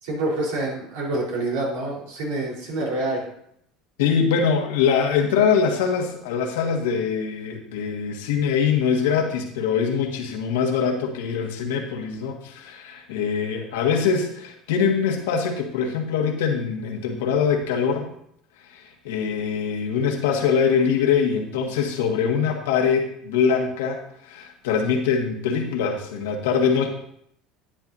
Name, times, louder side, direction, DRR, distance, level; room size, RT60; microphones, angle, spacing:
voice 1, 0.0-3.3, right 2 dB, 85° right, -2 dB, 3.9 m, -27 dB
voice 2, 4.0-18.1 18.7-26.9, left 6 dB, 90° left, 2 dB, 1.6 m, -23 dB
11.5 x 9.7 x 2.7 m, 0.70 s
supercardioid pair, 105°, 0 cm